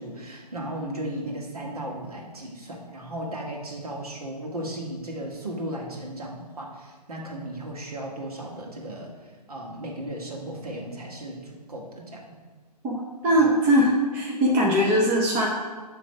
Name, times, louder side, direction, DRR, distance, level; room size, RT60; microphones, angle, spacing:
voice 1, 0.0-9.1 9.5-12.4, right 1 dB, 60° right, -1 dB, 1.8 m, -35 dB
voice 2, 13.2-15.5, equal, 10° right, -3 dB, 0.5 m, -20 dB
9.0 x 3.2 x 5.6 m, 1.4 s
figure-of-eight pair, 135°, 21 cm